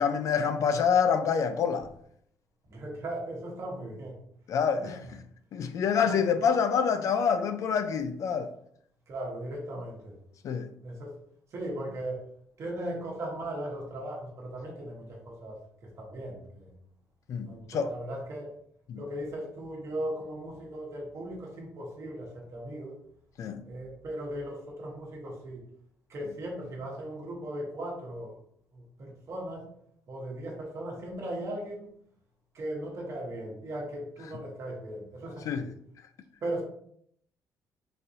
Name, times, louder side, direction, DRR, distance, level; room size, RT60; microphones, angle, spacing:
voice 1, 0.0-1.9 4.5-5.0 5.5-8.5 10.4-10.7 17.3-17.9 18.9-19.0 23.4-23.6 35.5-35.7, left 6 dB, 60° left, 0.3 m, -26 dB
voice 2, 2.7-4.2 4.8-5.0 6.0-6.2 9.1-10.2 10.8-11.1 11.5-12.2 12.6-16.7 17.5-18.6 19.0-23.0 23.6-25.6 26.1-28.4 28.7-29.7 30.1-31.9 32.5-35.7 36.4-36.6, right 1 dB, 55° right, 1.1 m, -38 dB
3.9 x 2.6 x 2.7 m
cardioid pair, 105°, 6 cm